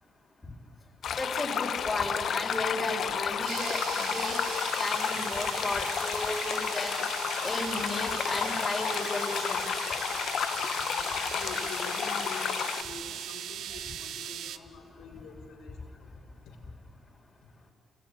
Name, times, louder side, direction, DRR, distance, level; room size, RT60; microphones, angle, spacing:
sound 1, 1.0-12.8, left 8 dB, 60° left, 1.3 m, -31 dB
voice 1, 1.2-4.4 4.8-7.0 7.4-9.6, left 2 dB, 20° left, 0 dB, 5.0 m, -34 dB
sound 2, 3.5-14.6, right 10 dB, 80° right, 0.9 m, -39 dB
voice 2, 10.6-16.1 16.5-16.6, left 5 dB, 85° left, -2 dB, 4.5 m, -46 dB
28.0 x 21.0 x 9.8 m, 2.4 s
cardioid pair, 90°, 0 cm